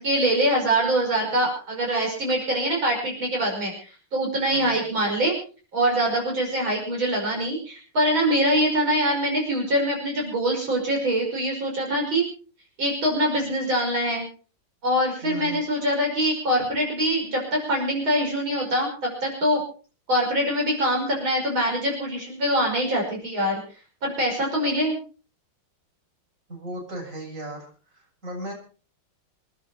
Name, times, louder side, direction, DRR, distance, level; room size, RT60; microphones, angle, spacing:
voice 1, 0.0-5.3 5.7-12.2 12.8-14.2 14.8-19.6 20.1-23.6 24.0-25.0, right 1 dB, 70° right, -1 dB, 6.5 m, -24 dB
voice 2, 15.2-15.6 26.5-27.7 28.2-28.5, right 1 dB, 35° right, -1 dB, 7.7 m, -35 dB
28.0 x 10.5 x 4.3 m, 0.38 s
omnidirectional pair, 2.3 m